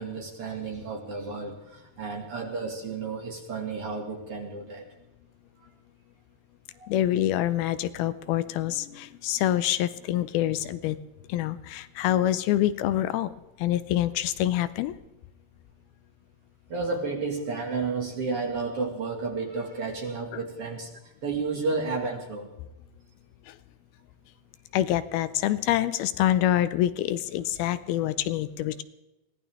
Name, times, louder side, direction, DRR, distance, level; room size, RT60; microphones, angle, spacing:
voice 1, 0.0-4.8 6.8-6.9 16.7-22.5, right 4 dB, 45° right, 1 dB, 2.4 m, -32 dB
voice 2, 6.9-11.0 11.3-13.3 13.6-14.9 20.3-20.4 23.5-23.6 24.7-28.8, left 13 dB, 80° left, 13 dB, 2.5 m, -26 dB
23.0 x 17.5 x 3.5 m, 0.98 s
omnidirectional pair, 4.5 m